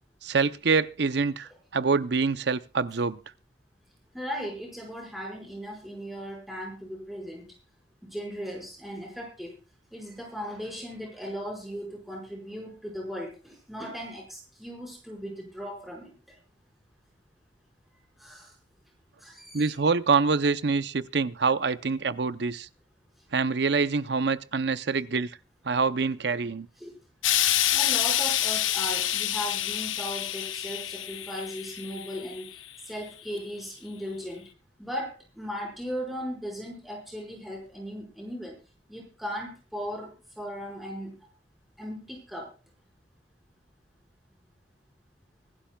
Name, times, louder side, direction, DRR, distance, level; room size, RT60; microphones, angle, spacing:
voice 1, 0.2-3.2 19.5-22.7 23.3-25.3 25.6-26.7, right 4 dB, 65° right, 0.6 m, -25 dB
voice 2, 4.1-7.5 8.0-9.5 9.9-16.4 18.2-18.5 19.2-19.7 26.8-26.9 27.7-32.6 32.8-34.4 34.8-38.6 38.9-41.2 41.8-42.5, equal, ahead, 5.1 m, -37 dB
Explosion, 27.2-32.5 33.4-33.5, left 12 dB, 90° left, 0.8 m, -27 dB
24.5 x 11.5 x 2.3 m
head